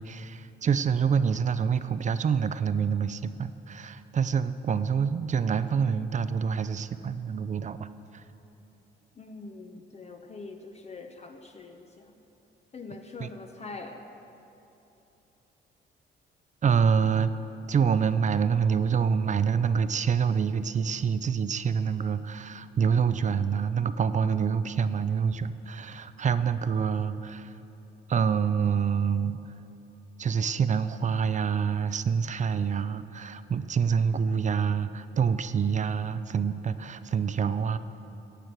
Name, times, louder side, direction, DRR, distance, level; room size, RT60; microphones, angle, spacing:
voice 1, 0.0-7.9 8.1-8.2 13.2-13.3 16.6-17.3 17.7-27.5 28.1-29.4 30.2-37.8, right 6 dB, 40° right, 13 dB, 0.5 m, -26 dB
voice 2, 9.1-12.1 12.7-14.0, left 3 dB, 35° left, 4 dB, 0.8 m, -43 dB
15.0 x 8.8 x 4.6 m, 3.0 s
cardioid pair, 90°, 20 cm